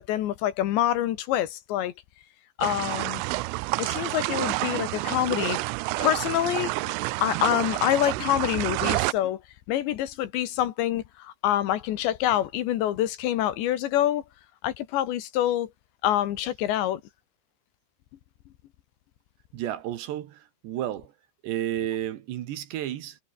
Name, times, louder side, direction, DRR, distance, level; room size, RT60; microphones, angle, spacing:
voice 1, 0.0-1.9 2.6-3.2 3.8-5.6 6.0-9.4 9.7-14.2 14.6-15.7 16.0-17.0, left 12 dB, 70° left, 3.5 m, -26 dB
sound 1, 2.6-9.1, right 23 dB, 85° right, 3.1 m, -29 dB
voice 2, 19.5-21.1 21.4-23.2, right 12 dB, 70° right, 3.4 m, -32 dB
omnidirectional pair, 5.7 m